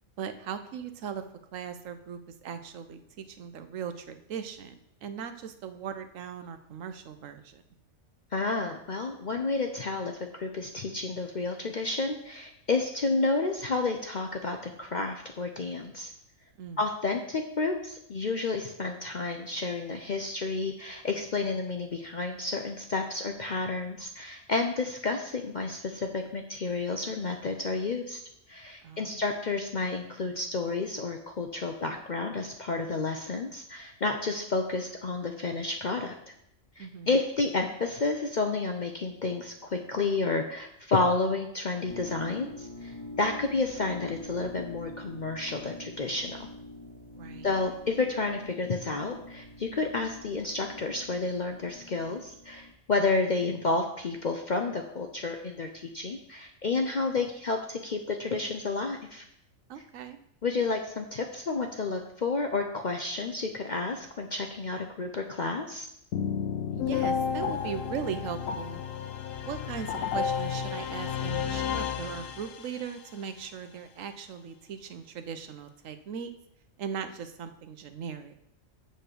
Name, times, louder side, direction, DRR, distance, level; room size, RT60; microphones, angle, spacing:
voice 1, 0.2-1.2 1.5-7.6 16.6-16.8 28.8-29.3 36.8-37.2 47.1-47.5 59.7-60.2 66.7-68.8 69.4-76.3 76.8-78.3, right 7 dB, 70° right, 10 dB, 1.0 m, -39 dB
voice 2, 8.3-16.1 16.8-28.2 28.5-36.2 36.8-46.5 47.4-59.2 60.4-65.9, left 3 dB, 50° left, 4 dB, 0.6 m, -30 dB
sound 1, 41.8-52.7, left 1 dB, 35° right, 1.5 m, -45 dB
sound 2, 66.1-72.9, left 7 dB, 75° left, 1.0 m, -31 dB
7.7 x 4.2 x 6.7 m, 0.76 s
omnidirectional pair, 1.4 m